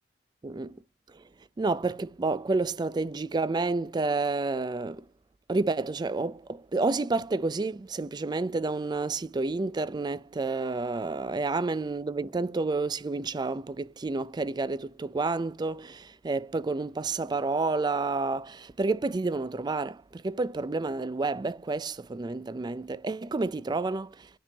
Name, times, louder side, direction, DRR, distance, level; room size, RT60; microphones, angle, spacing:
voice 1, 1.6-5.0 5.5-24.3, right 3 dB, 25° right, 0.4 m, -30 dB
10.0 x 3.6 x 3.9 m
head